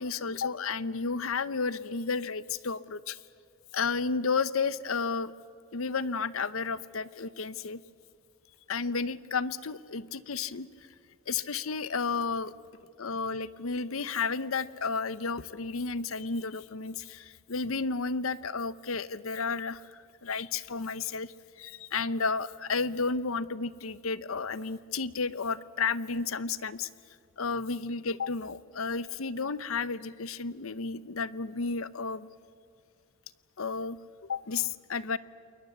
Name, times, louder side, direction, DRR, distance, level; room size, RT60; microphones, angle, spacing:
voice 1, 0.0-3.2 3.7-5.3 5.7-7.8 8.7-10.7 11.3-12.5 13.0-26.9 27.4-32.3 33.6-34.0 34.3-35.2, left 4 dB, 85° left, 17 dB, 0.8 m, -32 dB
28.5 x 22.0 x 8.3 m, 2.3 s
head